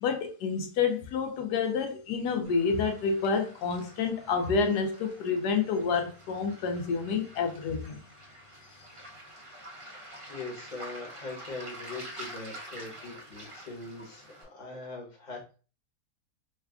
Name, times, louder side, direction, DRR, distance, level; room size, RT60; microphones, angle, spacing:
voice 1, 0.0-8.0, left 5 dB, 85° left, 1.2 m, -28 dB
Waves surf, 2.4-14.4, right 1 dB, 35° right, 0.5 m, -47 dB
voice 2, 10.3-15.6, left 3 dB, 30° left, 1.1 m, -41 dB
3.3 x 2.3 x 3.4 m
omnidirectional pair, 1.7 m